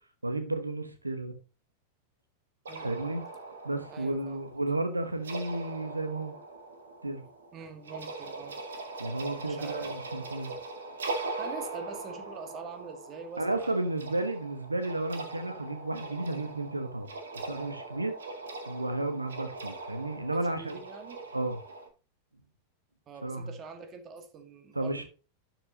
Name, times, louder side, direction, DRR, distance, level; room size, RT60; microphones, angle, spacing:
voice 1, 0.2-1.3 2.8-3.2 3.6-6.3 7.0-7.2 9.0-10.5 13.4-17.1 17.3-18.2 18.7-20.8 21.3-21.6 23.2-23.5 24.7-25.0, right 2 dB, 85° right, 1.1 m, -32 dB
sound 1, 2.7-21.9, right 3 dB, 65° right, 1.9 m, -41 dB
voice 2, 3.9-4.5 7.5-8.6 9.5-10.0 10.4-10.5 11.4-13.9 20.3-21.2 23.1-25.1, right 5 dB, 30° right, 1.9 m, -44 dB
12.0 x 6.1 x 2.8 m
figure-of-eight pair, 90°, 0 cm